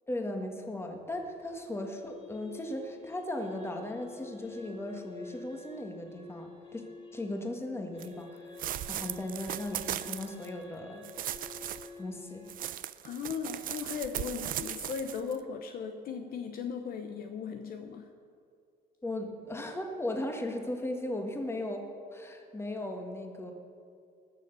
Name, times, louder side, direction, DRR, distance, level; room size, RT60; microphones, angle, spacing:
voice 1, 0.1-6.8 7.1-8.4 8.9-11.1 12.0-12.5 19.0-21.8 22.1-23.5, left 1 dB, 15° left, 3 dB, 1.7 m, -37 dB
sound 1, 1.0-12.5, left 4 dB, 30° left, 2.6 m, -50 dB
sound 2, 8.0-8.1 8.6-10.5 11.0-11.9 12.5-15.3, right 12 dB, 55° right, 0.5 m, -37 dB
voice 2, 13.0-18.1, left 6 dB, 60° left, 6 dB, 0.9 m, -37 dB
20.0 x 6.7 x 6.9 m, 2.4 s
cardioid pair, 110°, 17 cm